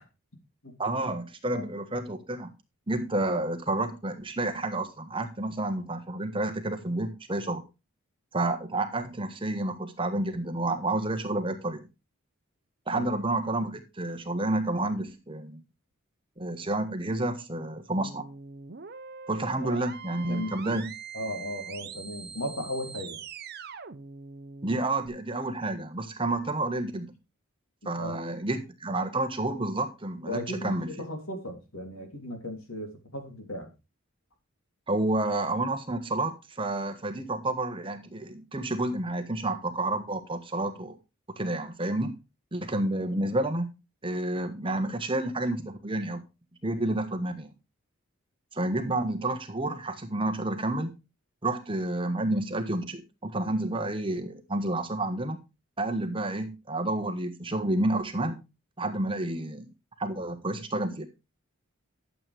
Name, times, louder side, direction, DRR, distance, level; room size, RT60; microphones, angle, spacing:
voice 1, 0.8-2.5 2.9-7.6 8.3-11.8 12.9-15.6 16.4-18.2 19.3-20.9 24.6-27.1 27.8-30.9 34.9-41.0 41.4-42.1 42.5-43.7 44.0-46.2 46.6-47.5 48.5-50.9 51.4-55.4 55.8-58.4 58.8-59.7 60.0-61.1, right 2 dB, 25° right, 7 dB, 1.3 m, -30 dB
sound 1, 17.9-25.1, right 6 dB, 50° right, 0.8 m, -43 dB
voice 2, 20.2-20.8 21.1-23.2 28.0-28.2 30.2-33.7, left 1 dB, 75° left, 4 dB, 3.1 m, -36 dB
12.0 x 7.7 x 3.4 m, 0.26 s
head